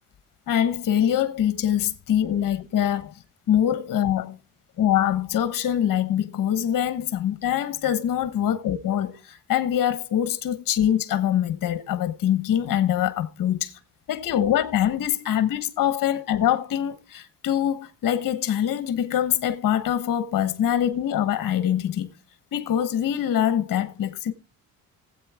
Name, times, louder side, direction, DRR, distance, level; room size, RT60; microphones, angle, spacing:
voice 1, 0.5-3.1 3.5-4.4 4.8-13.7 14.1-22.1 22.5-24.3, left 10 dB, 60° left, 1.1 m, -24 dB
18.5 x 8.0 x 3.4 m
cardioid pair, 80°, 38 cm